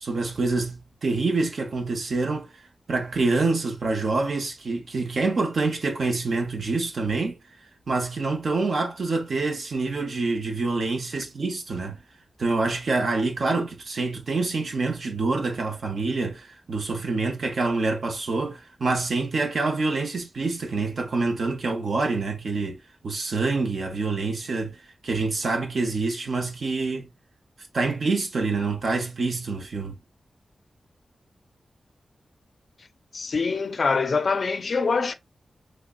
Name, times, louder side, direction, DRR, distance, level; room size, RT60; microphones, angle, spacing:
voice 1, 0.0-7.4 7.9-12.0 12.4-27.1 27.7-30.0, right 3 dB, 70° right, 0.7 m, -26 dB
voice 2, 33.1-35.1, left 4 dB, 60° left, 0.4 m, -24 dB
3.5 x 3.1 x 2.3 m
wide cardioid pair, 95°, 0 cm